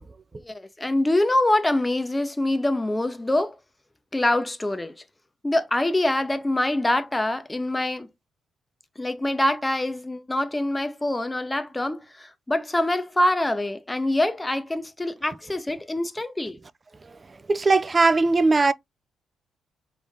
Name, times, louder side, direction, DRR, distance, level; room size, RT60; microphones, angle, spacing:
voice 1, 0.4-3.6 4.1-4.9 5.4-8.1 9.0-16.6, left 1 dB, 15° left, 0.7 m, -25 dB
voice 2, 17.5-18.7, right 3 dB, 30° right, 0.4 m, -19 dB
3.9 x 3.2 x 3.5 m
cardioid pair, 90°, 0 cm